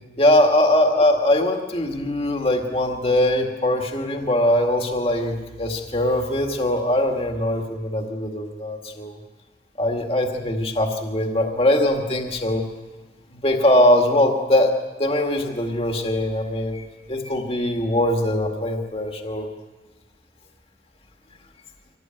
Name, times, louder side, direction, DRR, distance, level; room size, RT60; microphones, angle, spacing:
voice 1, 0.2-9.2 9.8-12.6 13.3-14.7 15.0-19.5, left 1 dB, 35° left, 3 dB, 2.1 m, -21 dB
25.5 x 18.0 x 9.2 m, 1.3 s
head